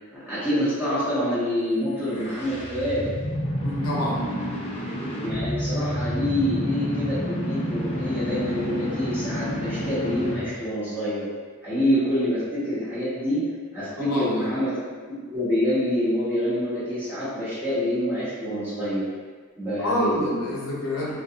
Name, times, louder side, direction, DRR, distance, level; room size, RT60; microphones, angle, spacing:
voice 1, 0.1-3.1 5.1-11.3 11.6-19.0 19.6-20.2, equal, 10° right, -13 dB, 1.0 m, -26 dB
sound 1, 2.0-10.6, equal, 30° left, 0.4 m, -29 dB
voice 2, 3.6-4.4 14.0-14.5 19.8-21.2, left 1 dB, 90° left, -5 dB, 0.6 m, -27 dB
2.4 x 2.4 x 2.7 m, 1.5 s
head